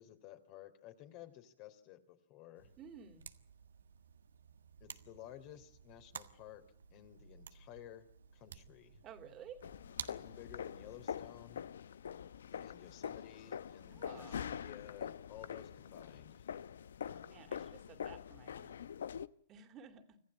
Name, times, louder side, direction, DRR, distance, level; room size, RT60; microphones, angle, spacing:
voice 1, 0.0-2.7 4.8-6.6 6.9-8.1 8.3-9.0 10.1-11.6 12.5-16.5, left 12 dB, 45° left, 8 dB, 3.3 m, -54 dB
sound 1, 2.6-11.0, right 7 dB, 90° right, 1.5 m, -53 dB
voice 2, 2.8-3.2 9.0-9.6 13.9-14.5 17.0-18.8 19.5-20.2, right 7 dB, 30° right, 8 dB, 2.9 m, -54 dB
sound 2, 9.6-19.3, left 8 dB, 80° left, 0.8 m, -45 dB
26.0 x 15.0 x 8.6 m, 0.66 s
hypercardioid pair, 125°, 0 cm